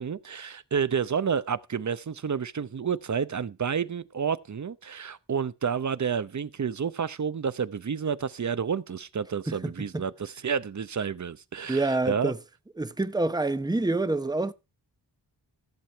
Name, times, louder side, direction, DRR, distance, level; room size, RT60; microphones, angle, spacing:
voice 1, 0.0-12.3, right 6 dB, 45° right, 0.7 m, -30 dB
voice 2, 9.5-10.0 11.7-12.4 12.8-14.5, right 2 dB, 10° right, 0.8 m, -27 dB
14.5 x 7.6 x 4.4 m
wide cardioid pair, 85°, 41 cm